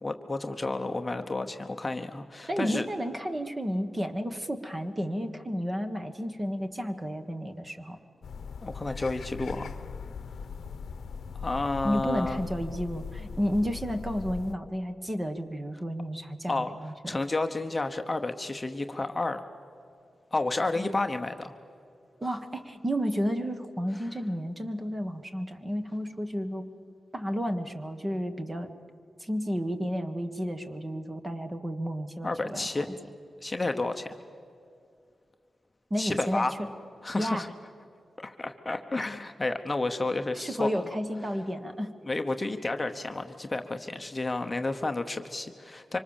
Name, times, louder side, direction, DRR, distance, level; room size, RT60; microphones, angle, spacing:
voice 1, 0.0-2.9 8.6-9.9 11.4-12.4 16.5-16.7 17.1-19.4 20.3-21.6 32.2-32.9 33.4-34.2 36.0-36.5 37.0-37.5 38.2-40.9 42.0-46.0, left 2 dB, 20° left, 6 dB, 1.0 m, -31 dB
voice 2, 2.5-8.0 11.8-17.2 20.8-20.9 22.2-26.7 27.1-28.7 29.2-32.9 35.9-36.5 37.1-37.5 40.3-41.9, equal, 20° right, 7 dB, 1.4 m, -32 dB
sound 1, 8.2-14.5, left 6 dB, 80° left, 0.9 m, -40 dB
25.5 x 25.0 x 7.3 m, 2.4 s
wide cardioid pair, 135°, 0 cm